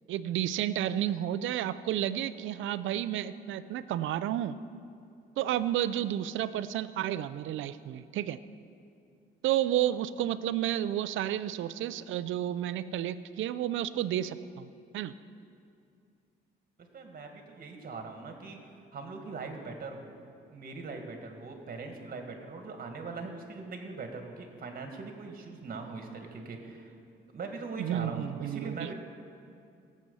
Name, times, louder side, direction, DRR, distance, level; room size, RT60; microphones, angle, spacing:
voice 1, 0.1-4.6 5.4-8.4 9.4-15.1 27.8-28.9, right 12 dB, 80° right, 14 dB, 0.5 m, -31 dB
voice 2, 16.9-20.2 20.5-26.9 27.3-28.9, right 4 dB, 45° right, 4 dB, 1.9 m, -41 dB
18.0 x 7.6 x 5.5 m, 2.4 s
cardioid pair, 90°, 20 cm